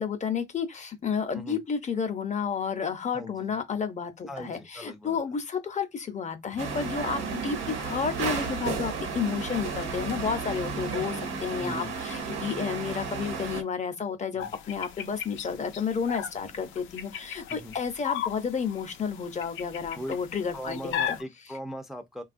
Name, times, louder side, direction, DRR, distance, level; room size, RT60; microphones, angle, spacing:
voice 1, 0.0-21.2, left 6 dB, 35° left, 0.6 m, -31 dB
voice 2, 3.1-3.6 4.3-5.2 7.6-7.9 11.6-12.0 14.3-14.5 17.5-17.8 19.9-20.2 20.5-22.2, equal, ahead, 0.5 m, -40 dB
sound 1, 6.6-13.6, right 5 dB, 80° right, 1.0 m, -33 dB
sound 2, 14.4-21.2, left 10 dB, 75° left, 0.5 m, -37 dB
3.3 x 2.3 x 2.5 m
cardioid pair, 90°, 20 cm